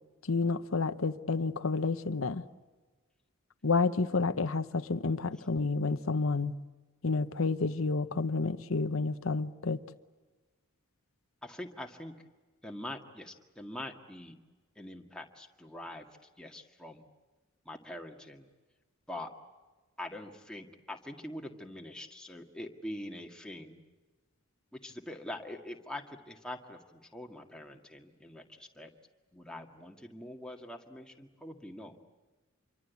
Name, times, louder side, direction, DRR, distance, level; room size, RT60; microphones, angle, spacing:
voice 1, 0.2-2.4 3.6-6.6 7.0-9.8, left 3 dB, 80° left, 0.9 m, -30 dB
voice 2, 11.4-12.3 12.6-14.3 14.7-16.1 16.4-17.0 17.6-18.5 19.1-19.3 20.0-23.8 24.7-28.9 29.3-32.1, left 1 dB, 5° left, 1.9 m, -44 dB
27.0 x 24.0 x 8.2 m
head